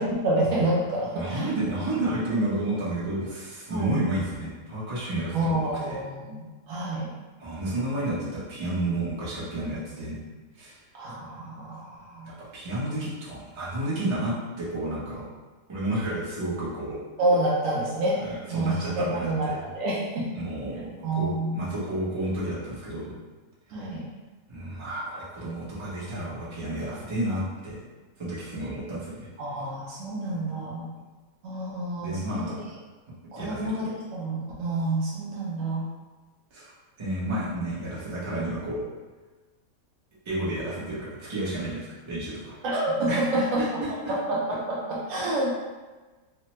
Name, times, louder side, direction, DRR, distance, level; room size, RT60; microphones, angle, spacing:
voice 1, 0.0-1.5 3.7-4.0 5.3-7.1 10.9-12.4 17.2-20.4 21.0-21.7 23.7-24.1 29.4-30.9 31.4-32.5 33.3-35.9 42.6-43.6 44.1-45.6, right 1 dB, 70° right, -5 dB, 0.9 m, -28 dB
voice 2, 1.1-6.0 7.4-10.2 10.5-10.8 12.2-15.3 15.7-17.0 18.2-19.6 20.3-23.1 24.5-27.8 28.2-29.3 32.0-32.5 33.4-33.7 36.5-38.8 40.2-42.6 43.1-43.7, right 1 dB, 25° right, -9 dB, 0.7 m, -31 dB
3.2 x 2.1 x 3.0 m, 1.3 s
omnidirectional pair, 1.5 m